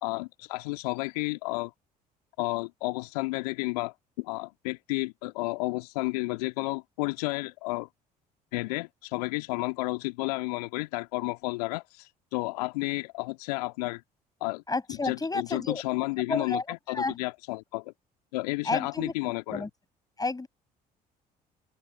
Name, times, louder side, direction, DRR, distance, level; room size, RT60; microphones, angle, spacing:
voice 1, 0.0-1.7 2.4-7.9 8.5-14.0 14.4-14.6 15.0-17.9 18.3-19.6, left 25 dB, 70° left, 2.0 m, -32 dB
voice 2, 14.7-15.8 16.3-17.2 18.6-19.1 19.5-19.7 20.2-20.5, left 3 dB, 20° left, 8.0 m, -31 dB
open air
figure-of-eight pair, 55°, 21 cm